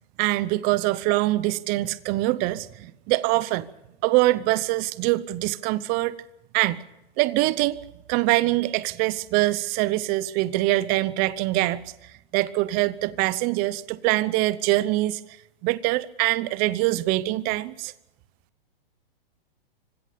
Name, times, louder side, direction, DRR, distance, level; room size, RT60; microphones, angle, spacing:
voice 1, 0.2-3.7 4.0-6.2 6.5-6.8 7.2-7.8 8.1-11.8 12.3-15.2 15.6-17.9, right 18 dB, 30° right, 0.8 m, -24 dB
25.5 x 16.5 x 6.9 m
hypercardioid pair, 135°, 30 cm